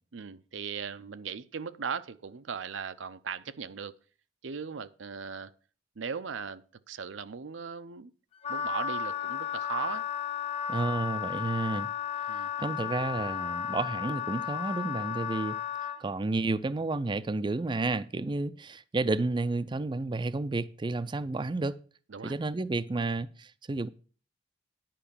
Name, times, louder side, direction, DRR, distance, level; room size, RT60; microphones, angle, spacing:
voice 1, 0.1-3.9 4.4-5.5 6.0-8.1 8.5-10.0 12.3-12.5 22.1-22.3, right 6 dB, 90° right, 0.6 m, -38 dB
Wind instrument woodwind instrument, 8.4-16.0, left 8 dB, 35° left, 0.9 m, -34 dB
voice 2, 10.7-11.9 12.3-15.6 16.0-21.8 22.2-23.9, right 3 dB, 25° right, 0.4 m, -31 dB
10.0 x 5.4 x 6.9 m
head